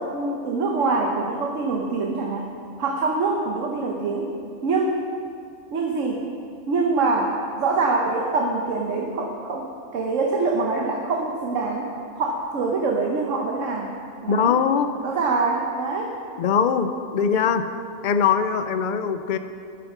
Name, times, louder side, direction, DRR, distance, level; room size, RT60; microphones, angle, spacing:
voice 1, 0.0-2.5 2.8-4.3 4.6-5.0 5.7-6.3 6.7-13.9 14.2-14.5 15.0-16.1, right 3 dB, 70° right, 1 dB, 1.3 m, -24 dB
voice 2, 14.3-14.9 16.4-17.7 18.0-19.4, left 7 dB, 55° left, 9 dB, 0.5 m, -21 dB
11.0 x 9.4 x 6.0 m, 2.4 s
omnidirectional pair, 1.4 m